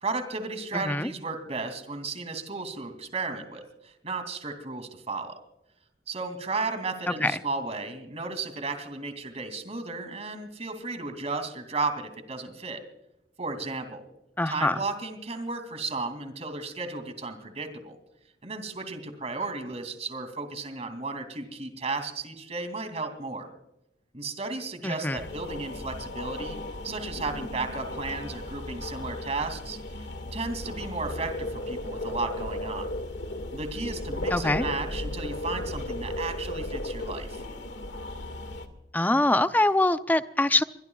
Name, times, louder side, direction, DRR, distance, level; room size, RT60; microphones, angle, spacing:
voice 1, 0.0-5.4 6.1-12.8 13.4-14.0 14.5-18.0 18.4-23.5 24.1-26.6 26.8-29.8 30.3-32.9 33.5-37.4, right 3 dB, 40° right, 7 dB, 2.9 m, -34 dB
voice 2, 0.7-1.1 7.1-7.3 14.4-14.8 24.8-25.2 34.3-34.6 38.9-40.6, left 2 dB, 10° left, 11 dB, 0.6 m, -24 dB
sound 1, 25.1-38.7, left 1 dB, 75° left, 2.1 m, -35 dB
24.0 x 23.0 x 2.4 m, 0.84 s
head